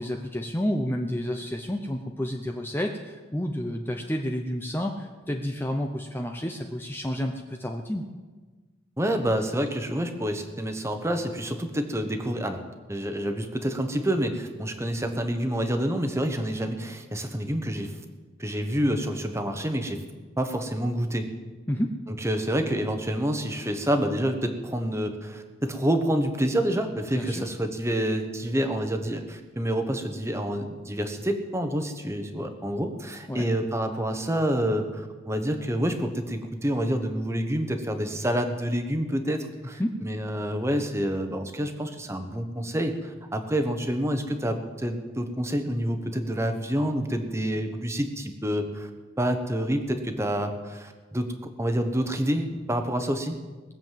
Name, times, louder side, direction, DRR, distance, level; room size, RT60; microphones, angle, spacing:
voice 1, 0.0-8.0 21.7-21.9 27.1-27.4 33.3-33.4 39.8-40.0, equal, 10° left, 3 dB, 0.6 m, -30 dB
voice 2, 9.0-12.6 12.9-18.0 18.4-20.0 20.4-21.3 22.2-48.9 49.2-51.3 51.6-53.4, equal, 15° right, 6 dB, 1.1 m, -28 dB
20.0 x 7.5 x 7.5 m, 1.3 s
head